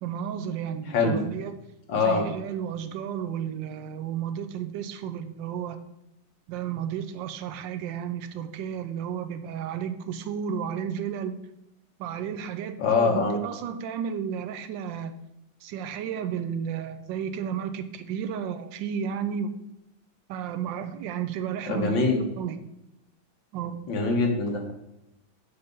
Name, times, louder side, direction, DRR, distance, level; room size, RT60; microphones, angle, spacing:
voice 1, 0.0-1.6 2.0-5.8 6.5-11.4 12.0-15.1 15.6-19.5 20.3-22.0 22.4-22.6 23.5-23.8, right 8 dB, 75° right, 9 dB, 1.3 m, -32 dB
voice 2, 0.9-1.2 1.9-2.2 12.8-13.4 21.7-22.2 23.9-24.7, left 4 dB, 75° left, 2 dB, 2.0 m, -23 dB
6.0 x 5.4 x 5.2 m, 0.86 s
omnidirectional pair, 2.1 m